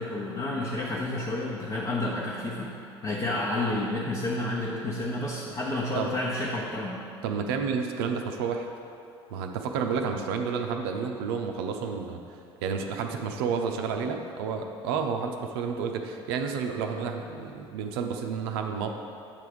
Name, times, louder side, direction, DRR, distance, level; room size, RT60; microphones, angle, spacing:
voice 1, 0.0-2.8 3.0-7.0, left 2 dB, 30° left, -5 dB, 1.0 m, -30 dB
voice 2, 7.2-8.7 9.3-18.9, right 6 dB, 60° right, 4 dB, 0.5 m, -30 dB
8.8 x 3.4 x 5.0 m, 2.5 s
figure-of-eight pair, 65°, 14 cm